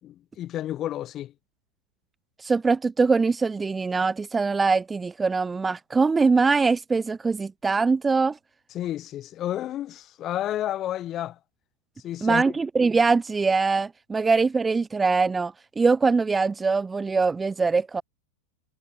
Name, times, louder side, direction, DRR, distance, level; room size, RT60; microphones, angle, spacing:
voice 1, 0.0-1.3 8.7-11.4 12.0-12.4, left 12 dB, 35° left, 3.5 m, -31 dB
voice 2, 2.4-8.4 12.2-18.0, right 4 dB, 15° right, 0.6 m, -22 dB
hypercardioid pair, 105°, 0 cm